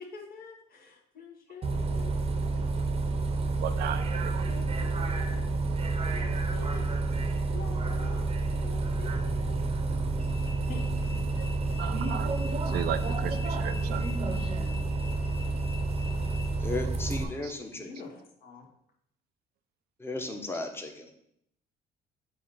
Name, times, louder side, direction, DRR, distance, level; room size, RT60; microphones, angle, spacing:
voice 1, 0.0-2.1 4.1-5.5 6.1-6.9 7.5-8.3 8.6-9.6 10.4-11.1 17.1-18.7, left 5 dB, 60° left, 1 dB, 1.5 m, -47 dB
Bus, 1.6-17.2, right 3 dB, 35° right, 0.8 m, -29 dB
voice 2, 3.6-4.4 11.4-11.5 11.8-12.3 12.7-14.0 17.4-17.5, right 10 dB, 70° right, 10 dB, 0.5 m, -35 dB
voice 3, 16.6-18.1 20.0-21.1, left 2 dB, 15° left, 4 dB, 1.0 m, -35 dB
7.4 x 2.8 x 5.6 m, 0.73 s
cardioid pair, 110°, 17 cm